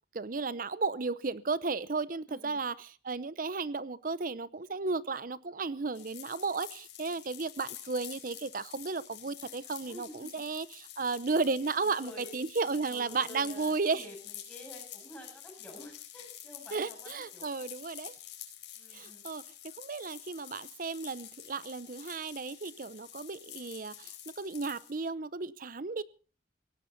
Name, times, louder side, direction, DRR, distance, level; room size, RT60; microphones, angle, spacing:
voice 1, 0.1-14.1 16.7-18.1 18.9-19.4 19.8-26.0, right 4 dB, 50° right, 17 dB, 0.7 m, -34 dB
voice 2, 2.3-2.6 9.9-10.3 11.8-12.3 12.9-17.5 18.8-19.2, equal, 5° left, 0 dB, 7.7 m, -49 dB
sound 1, 5.9-24.9, left 11 dB, 90° left, 4.3 m, -48 dB
18.0 x 17.0 x 4.0 m, 0.37 s
head